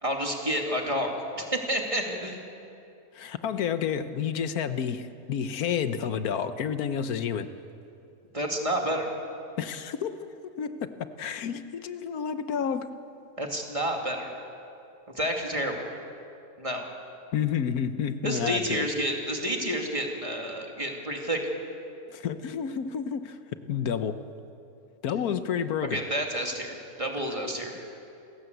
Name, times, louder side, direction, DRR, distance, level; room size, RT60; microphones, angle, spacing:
voice 1, 0.0-2.4 8.3-9.1 13.4-14.3 15.1-15.9 16.6-16.9 18.2-21.4 25.9-27.8, right 1 dB, 20° right, 1 dB, 2.5 m, -30 dB
voice 2, 3.1-7.5 9.6-10.9 11.2-12.9 17.3-18.9 22.1-23.4 23.7-24.2 25.0-26.0, left 8 dB, 85° left, 11 dB, 1.4 m, -30 dB
28.5 x 15.5 x 8.0 m, 2.6 s
omnidirectional pair, 1.5 m